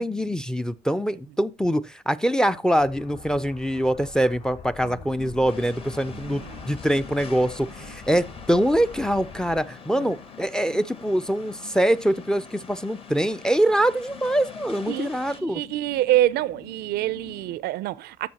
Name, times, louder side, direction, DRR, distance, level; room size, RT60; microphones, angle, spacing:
voice 1, 0.0-15.6, right 1 dB, 5° left, 0.4 m, -24 dB
sound 1, 2.8-9.6, left 4 dB, 60° left, 4.4 m, -44 dB
sound 2, 5.1-17.6, left 8 dB, 80° left, 1.4 m, -47 dB
sound 3, 5.5-15.4, left 4 dB, 35° left, 1.0 m, -46 dB
voice 2, 6.1-6.7 9.9-10.1 14.9-18.3, right 14 dB, 70° right, 0.4 m, -26 dB
14.0 x 5.7 x 2.8 m
cardioid pair, 110°, 17 cm